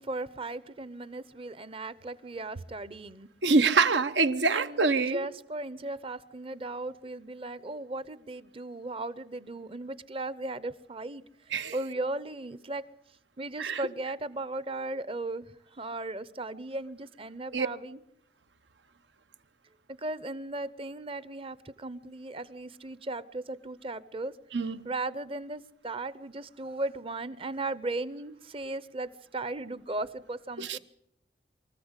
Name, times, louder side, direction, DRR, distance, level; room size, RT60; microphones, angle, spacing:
voice 1, 0.0-3.3 4.5-11.2 11.7-12.9 13.4-15.5 15.7-18.0 20.0-24.3 24.8-30.8, right 2 dB, 30° right, 0.8 m, -36 dB
voice 2, 3.4-5.3 11.5-11.8 13.6-13.8 17.5-17.7 24.5-24.8 30.6-30.8, right 4 dB, 80° right, 1.0 m, -25 dB
24.0 x 14.5 x 8.2 m
head